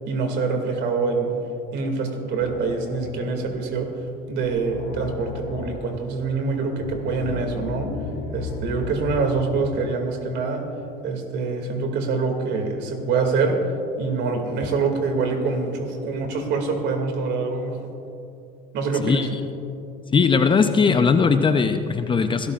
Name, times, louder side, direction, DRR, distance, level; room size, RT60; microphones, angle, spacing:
voice 1, 0.1-1.3 1.7-3.9 4.3-7.9 8.3-10.6 11.0-13.6 14.0-17.9 18.7-19.3, right 4 dB, 60° right, 4 dB, 2.4 m, -25 dB
sound 1, 2.2-3.7 4.1-4.2 4.4-6.0 6.6-9.7, left 3 dB, 65° left, 2.4 m, -35 dB
voice 2, 20.1-22.5, left 5 dB, 25° left, 8 dB, 0.7 m, -19 dB
25.0 x 13.0 x 2.5 m, 2.6 s
supercardioid pair, 100°, 20 cm